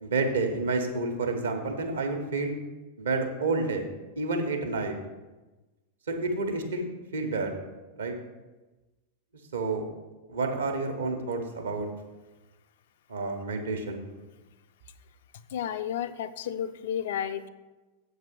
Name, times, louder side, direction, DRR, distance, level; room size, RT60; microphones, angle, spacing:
voice 1, 0.0-2.6 3.0-3.9 4.2-4.9 6.1-7.5 8.0-8.1 9.5-9.9 10.3-11.9 13.1-14.0, right 3 dB, 70° right, 4 dB, 1.1 m, -29 dB
voice 2, 15.5-17.5, left 9 dB, 55° left, 11 dB, 0.4 m, -32 dB
7.3 x 4.6 x 6.7 m, 1.2 s
figure-of-eight pair, 90°, 0 cm